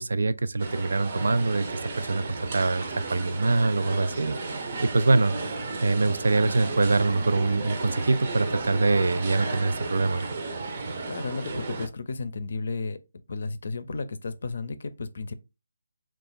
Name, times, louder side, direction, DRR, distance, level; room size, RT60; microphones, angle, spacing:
voice 1, 0.0-1.7 2.0-2.2 2.5-5.3 5.8-10.2, right 3 dB, 75° right, 0.3 m, -24 dB
sound 1, 0.6-11.9, right 3 dB, 40° right, 0.6 m, -34 dB
voice 2, 11.1-13.0 13.3-15.3, left 3 dB, 60° left, 0.5 m, -33 dB
3.0 x 2.4 x 3.9 m
hypercardioid pair, 165°, 0 cm